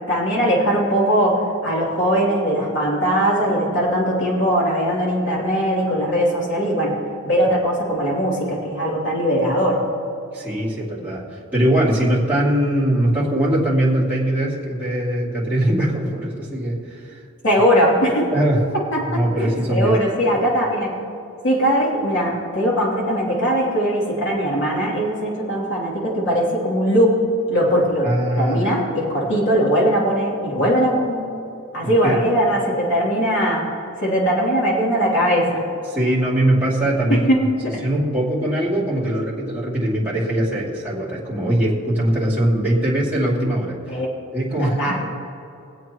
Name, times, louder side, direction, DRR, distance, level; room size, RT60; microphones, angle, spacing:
voice 1, 0.1-6.9 7.2-9.8 17.4-18.3 18.9-20.9 21.4-27.2 27.5-28.1 28.4-31.2 31.7-33.6 34.0-35.6 37.1-37.4 37.6-37.7 43.9-44.1 44.5-45.0, equal, 60° left, -5 dB, 3.2 m, -20 dB
voice 2, 10.3-17.2 18.3-18.7 19.1-19.9 28.0-28.7 32.0-32.2 35.9-37.3 37.8-43.8 44.3-45.0, right 1 dB, 10° right, -9 dB, 2.8 m, -21 dB
23.5 x 8.2 x 3.1 m, 2.6 s
head